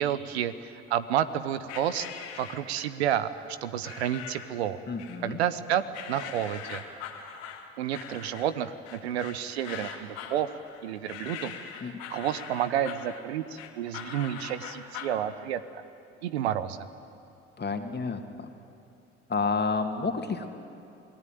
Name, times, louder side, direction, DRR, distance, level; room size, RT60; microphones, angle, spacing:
voice 1, 0.0-2.1 2.3-3.3 3.6-4.8 5.2-5.8 6.1-6.8 7.8-10.5 10.8-11.5 12.1-15.6 16.2-16.9, right 10 dB, 85° right, 13 dB, 0.9 m, -30 dB
sound 1, 1.7-3.0 3.8-4.6 5.0-5.6 5.9-15.2, left 8 dB, 75° left, 2.3 m, -42 dB
voice 2, 4.9-5.4 11.8-12.0 17.6-18.5 19.3-20.5, left 4 dB, 35° left, 5 dB, 2.4 m, -30 dB
27.5 x 19.0 x 9.3 m, 2.6 s
hypercardioid pair, 60°, 31 cm